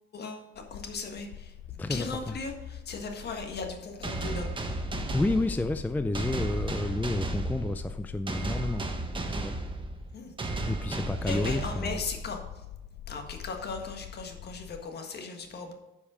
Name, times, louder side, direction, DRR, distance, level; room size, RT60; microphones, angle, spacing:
voice 1, 0.1-4.8 10.1-10.3 11.2-12.4 13.1-15.7, left 4 dB, 55° left, 4 dB, 1.6 m, -38 dB
sound 1, 0.5-14.9, left 10 dB, 85° left, 0.5 m, -44 dB
voice 2, 1.8-2.4 5.1-8.9 9.4-9.5 10.6-12.0, left 2 dB, 10° left, 9 dB, 0.4 m, -30 dB
sound 2, 4.0-12.5, right 2 dB, 25° right, 1.2 m, -34 dB
9.8 x 5.4 x 5.0 m, 0.98 s
cardioid pair, 90°, 20 cm